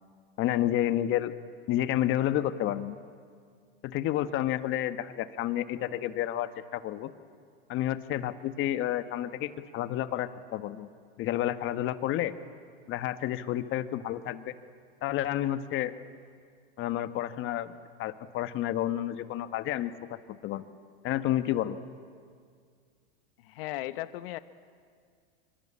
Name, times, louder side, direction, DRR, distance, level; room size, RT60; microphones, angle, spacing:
voice 1, 0.4-1.3 1.7-3.0 3.8-7.1 7.7-10.9 11.2-12.3 12.9-14.5 15.0-15.9 16.8-17.7 18.0-20.6 21.0-21.8, left 12 dB, 40° left, 10 dB, 1.4 m, -30 dB
voice 2, 23.4-24.4, left 16 dB, 65° left, 12 dB, 1.1 m, -36 dB
26.0 x 25.0 x 8.8 m, 2.1 s
hypercardioid pair, 115°, 31 cm